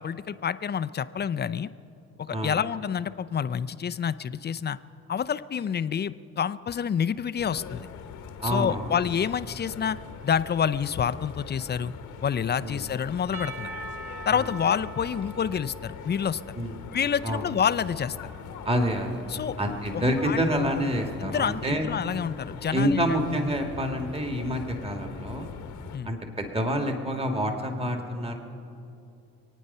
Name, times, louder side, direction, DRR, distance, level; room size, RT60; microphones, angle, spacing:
voice 1, 0.0-1.7 2.2-4.8 5.1-7.9 8.4-10.0 10.2-11.9 12.2-13.7 14.3-16.4 16.9-18.2 19.3-19.6 19.9-20.4 21.2-23.2 25.9-26.1, left 7 dB, 35° left, 15 dB, 0.5 m, -28 dB
sound 1, 7.4-26.0, left 7 dB, 90° left, 1.3 m, -42 dB
voice 2, 8.4-8.9 12.6-12.9 14.3-14.5 16.6-16.8 17.2-17.5 18.7-19.2 19.6-21.9 22.7-25.5 26.0-28.4, equal, 20° right, 4 dB, 1.9 m, -27 dB
Percussion / Church bell, 13.3-17.3, right 2 dB, 60° right, 1.3 m, -42 dB
26.5 x 9.3 x 5.5 m, 2.7 s
cardioid pair, 90°, 30 cm